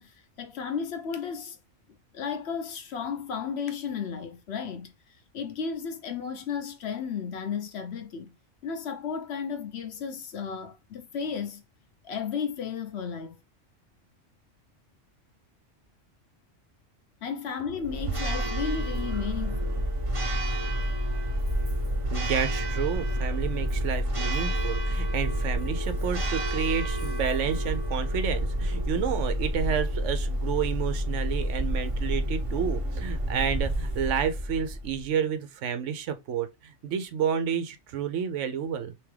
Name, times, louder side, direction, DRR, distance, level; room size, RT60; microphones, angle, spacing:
voice 1, 0.0-1.6 2.1-4.9 5.3-8.3 8.6-11.6 12.0-13.4 17.2-19.9, left 6 dB, 65° left, 0.9 m, -34 dB
Church bell, 17.8-35.1, equal, 30° right, 0.8 m, -29 dB
voice 2, 22.1-38.9, right 8 dB, 75° right, 1.0 m, -30 dB
3.5 x 3.0 x 3.1 m
omnidirectional pair, 1.3 m